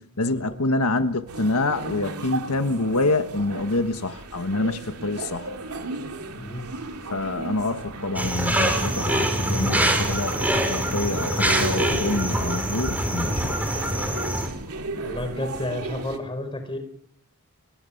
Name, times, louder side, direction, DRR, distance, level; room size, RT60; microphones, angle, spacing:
voice 1, 0.0-5.5 7.1-13.5, left 2 dB, 85° left, 1.5 m, -26 dB
sound 1, 1.3-16.2, right 2 dB, 85° right, 2.9 m, -35 dB
voice 2, 6.3-6.7 15.0-16.8, left 1 dB, 25° left, 5.2 m, -31 dB
sound 2, 8.2-14.5, right 1 dB, 5° right, 5.6 m, -24 dB
30.0 x 18.0 x 7.2 m
head